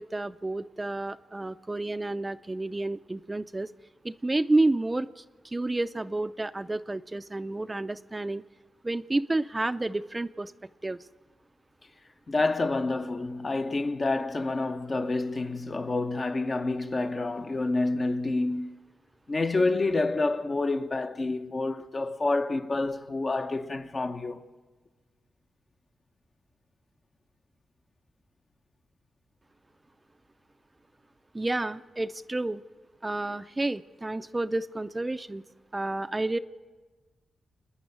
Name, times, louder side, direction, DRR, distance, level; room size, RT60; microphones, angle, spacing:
voice 1, 0.0-3.7 4.0-8.4 8.8-10.5 10.8-11.0 31.3-32.6 33.0-35.4 35.7-36.4, right 2 dB, 25° right, 0.5 m, -30 dB
voice 2, 12.3-18.7 19.3-24.5, left 2 dB, 40° left, 1.1 m, -28 dB
28.0 x 9.8 x 9.5 m
cardioid pair, 60°, 0 cm